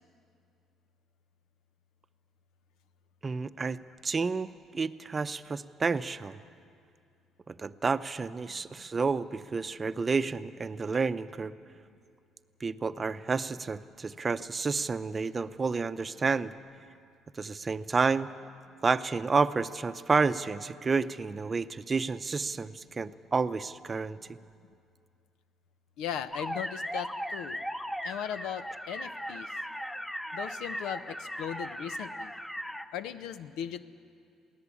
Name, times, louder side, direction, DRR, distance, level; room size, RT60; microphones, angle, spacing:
voice 1, 3.2-6.4 7.5-11.5 12.6-16.5 17.3-18.3 18.8-24.2, right 4 dB, 30° right, 12 dB, 0.7 m, -30 dB
voice 2, 26.0-27.6 28.0-29.5 30.3-32.3 32.9-33.8, left 9 dB, 80° left, 13 dB, 0.8 m, -38 dB
sound 1, 26.3-32.8, equal, 5° left, 0.9 m, -38 dB
22.5 x 16.5 x 8.5 m, 2.4 s
supercardioid pair, 80°, 0 cm